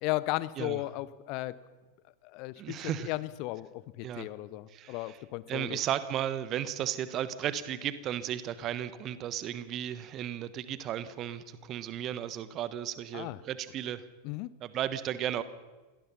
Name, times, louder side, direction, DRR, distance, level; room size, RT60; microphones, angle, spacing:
voice 1, 0.0-1.5 2.3-5.8 13.1-13.4 14.2-14.5, left 19 dB, 45° left, 17 dB, 1.0 m, -35 dB
voice 2, 2.6-3.1 4.0-4.3 4.7-5.2 5.5-14.0 14.6-15.4, right 11 dB, 35° right, 15 dB, 1.2 m, -34 dB
27.5 x 18.5 x 5.7 m, 1.2 s
figure-of-eight pair, 90°, 0 cm